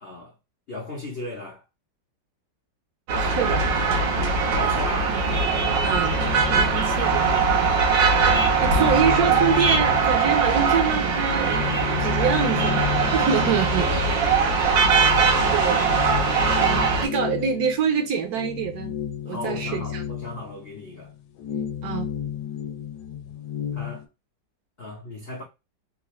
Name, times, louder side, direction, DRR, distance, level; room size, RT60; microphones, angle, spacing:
voice 1, 0.0-0.3 0.7-1.6 4.5-5.4 6.5-7.1 13.7-15.5 19.3-21.1 23.7-24.0 24.8-25.4, left 2 dB, 60° left, 0.6 m, -37 dB
sound 1, 3.1-17.1, right 5 dB, 90° right, 1.6 m, -21 dB
voice 2, 3.2-3.7 5.8-6.2 6.5-7.5 8.6-13.9 15.5-15.8 16.6-18.9 19.2-20.0 21.8-22.1, right 7 dB, 70° right, 1.1 m, -26 dB
sound 2, 5.5-7.7 8.1-10.8 11.2-24.0, left 10 dB, 85° left, 1.2 m, -33 dB
3.8 x 2.4 x 3.0 m
omnidirectional pair, 1.9 m